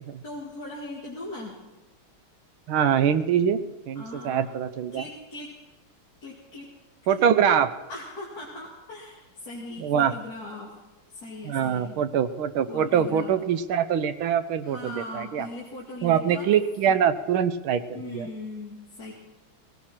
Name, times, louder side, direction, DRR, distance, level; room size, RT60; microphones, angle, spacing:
voice 1, 0.2-1.6 4.0-4.5 4.9-5.5 6.2-6.7 7.1-7.2 7.9-10.7 11.1-11.9 12.7-13.3 14.6-16.5 16.9-17.0 17.9-19.1, left 2 dB, 45° left, -5 dB, 2.9 m, -39 dB
voice 2, 2.7-3.6 3.9-5.0 7.1-7.7 9.8-10.1 11.4-15.5 16.0-18.3, right 8 dB, 75° right, 11 dB, 1.6 m, -24 dB
18.5 x 17.0 x 4.4 m, 1.1 s
omnidirectional pair, 2.4 m